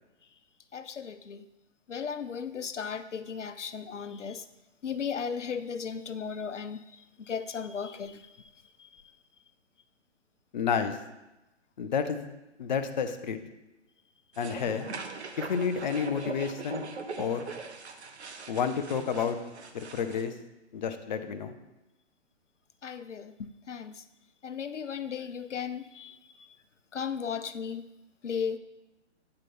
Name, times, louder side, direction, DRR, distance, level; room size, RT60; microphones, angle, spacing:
voice 1, 0.7-1.4 1.9-4.4 4.8-6.8 7.2-8.3 8.8-9.0 22.8-24.0 24.4-26.5 26.9-27.9 28.2-28.6, left 6 dB, 85° left, 12 dB, 0.5 m, -36 dB
voice 2, 10.5-11.0 11.8-12.2 12.6-13.4 14.4-14.9 15.4-16.9 17.2-17.5 18.5-19.4 19.7-20.3 20.7-21.5, left 6 dB, 40° left, 8 dB, 0.6 m, -30 dB
sound 1, 14.3-20.2, right 4 dB, 65° right, 0.8 m, -41 dB
8.6 x 4.4 x 4.3 m, 0.99 s
figure-of-eight pair, 125°, 35 cm